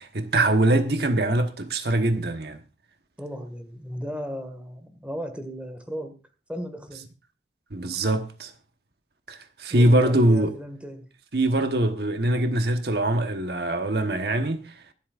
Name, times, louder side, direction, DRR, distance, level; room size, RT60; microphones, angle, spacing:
voice 1, 0.0-2.6 7.7-8.5 9.3-10.5 11.3-14.7, right 1 dB, 65° right, 1.2 m, -23 dB
voice 2, 3.2-6.1 6.5-7.1 9.7-11.0, equal, 5° right, 1.9 m, -35 dB
24.5 x 8.5 x 2.5 m
head